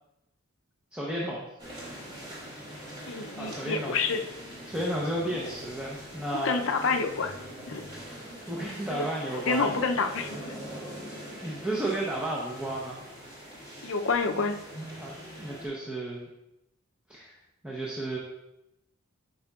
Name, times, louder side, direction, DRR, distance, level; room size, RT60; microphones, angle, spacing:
voice 1, 0.9-1.5 3.4-4.1 4.7-6.6 8.5-9.7 11.4-13.0 15.0-16.3 17.1-17.4 17.6-18.2, right 1 dB, 5° right, -5 dB, 0.8 m, -32 dB
sound 1, 1.6-15.7, right 1 dB, 20° right, 2.3 m, -43 dB
voice 2, 3.1-4.2 6.3-7.3 7.7-7.9 8.9-9.1 9.3-10.4 13.8-14.6, left 4 dB, 65° left, 6 dB, 0.6 m, -28 dB
9.2 x 5.4 x 2.4 m, 0.89 s
head